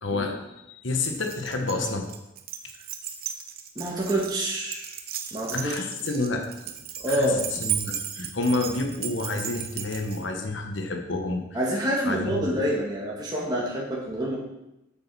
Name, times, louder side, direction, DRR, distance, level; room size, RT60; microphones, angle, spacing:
voice 1, 0.0-0.4 0.7-2.1 5.5-6.5 7.1-11.4 12.1-12.6, left 2 dB, 70° left, 5 dB, 1.3 m, -29 dB
Keys jangling, 1.0-10.2, right 9 dB, 50° right, 0.9 m, -35 dB
voice 2, 3.8-4.9 5.3-5.7 7.0-7.4 11.5-14.4, right 1 dB, 20° right, -5 dB, 1.8 m, -27 dB
8.1 x 7.7 x 6.1 m, 0.91 s
head